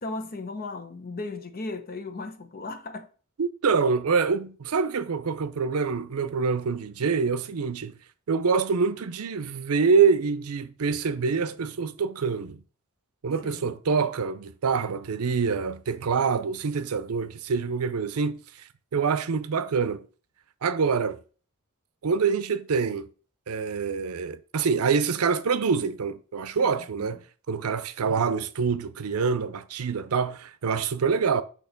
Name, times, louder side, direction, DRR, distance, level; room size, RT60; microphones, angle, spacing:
voice 1, 0.0-3.1 13.4-14.0 26.6-27.1, left 3 dB, 45° left, 0.8 m, -37 dB
voice 2, 3.4-7.9 8.3-12.6 13.2-18.4 18.9-20.0 20.6-21.2 22.0-23.1 23.5-27.2 27.5-31.4, right 5 dB, 85° right, 0.5 m, -25 dB
6.5 x 3.0 x 5.7 m
head